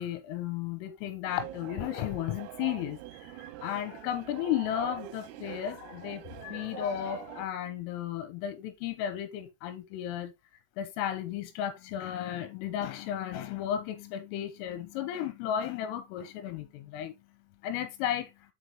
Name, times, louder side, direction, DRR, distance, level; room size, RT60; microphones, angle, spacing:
voice 1, 0.0-10.3 10.8-17.1 17.6-18.3, left 10 dB, 90° left, 3.4 m, -34 dB
sound 1, 1.3-7.5, right 13 dB, 90° right, 3.3 m, -44 dB
6.5 x 5.5 x 3.1 m
omnidirectional pair, 6.0 m